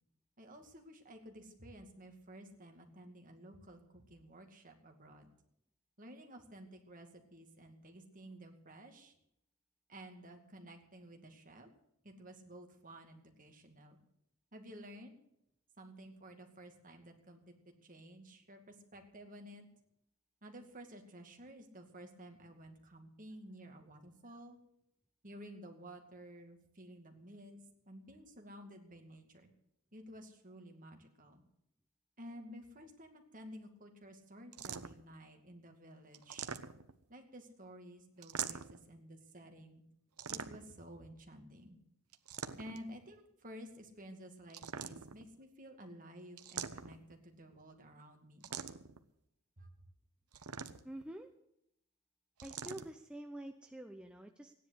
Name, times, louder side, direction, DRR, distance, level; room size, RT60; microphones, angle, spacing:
voice 1, 0.4-5.3 6.0-9.1 9.9-11.7 12.0-14.0 14.5-15.1 15.8-17.4 17.8-19.7 20.4-24.6 25.2-29.5 29.9-31.4 32.2-36.5 37.1-39.8 40.3-41.8 42.6-48.5 49.6-49.7, equal, 35° right, 4 dB, 2.3 m, -53 dB
sound 1, 34.5-35.1 36.1-37.0 38.2-38.8 40.2-40.8 42.1-42.9 44.5-45.3 46.4-47.1 48.4-49.0 50.3-51.0 52.4-52.9, right 7 dB, 80° right, 1.0 m, -43 dB
voice 2, 50.8-51.3 52.4-54.5, right 1 dB, 5° right, 4 dB, 0.7 m, -47 dB
15.5 x 10.5 x 8.1 m, 0.77 s
head